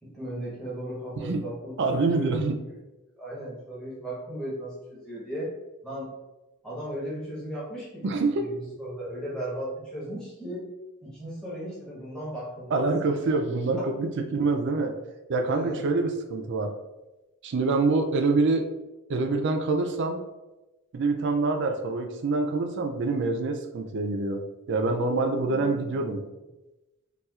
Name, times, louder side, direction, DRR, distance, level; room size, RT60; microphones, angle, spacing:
voice 1, 0.0-2.4 3.2-5.5 5.8-6.1 6.6-10.6 11.0-12.9 13.8-13.9 15.5-15.8 25.2-26.3, equal, 5° left, -8 dB, 1.0 m, -36 dB
voice 2, 1.2-1.5 1.8-2.6 8.0-8.5 12.7-14.9 15.3-16.8 17.4-18.6 19.1-20.2 20.9-26.3, right 3 dB, 55° right, 5 dB, 0.4 m, -26 dB
4.2 x 2.3 x 2.3 m, 1.0 s
head